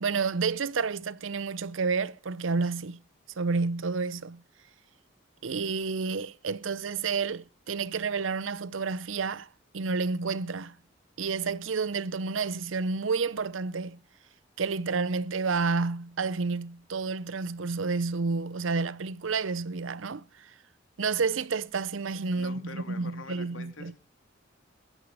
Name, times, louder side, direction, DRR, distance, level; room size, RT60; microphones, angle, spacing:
voice 1, 0.0-3.0 3.4-4.4 5.4-9.5 9.7-10.8 11.2-14.0 14.6-20.5 21.0-23.9, right 4 dB, 80° right, 0.6 m, -30 dB
voice 2, 22.3-24.0, left 3 dB, 80° left, 2.9 m, -44 dB
15.5 x 12.5 x 4.9 m
head